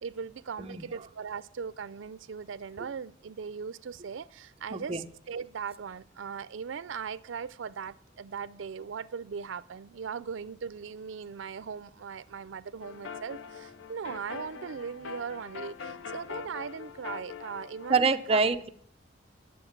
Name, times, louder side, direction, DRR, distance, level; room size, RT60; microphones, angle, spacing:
voice 1, 0.0-18.4, right 6 dB, 85° right, 0.4 m, -39 dB
voice 2, 4.7-5.1 17.9-18.7, right 4 dB, 30° right, 0.6 m, -26 dB
sound 1, 12.8-18.0, left 5 dB, 85° left, 0.6 m, -42 dB
11.0 x 7.2 x 7.2 m
head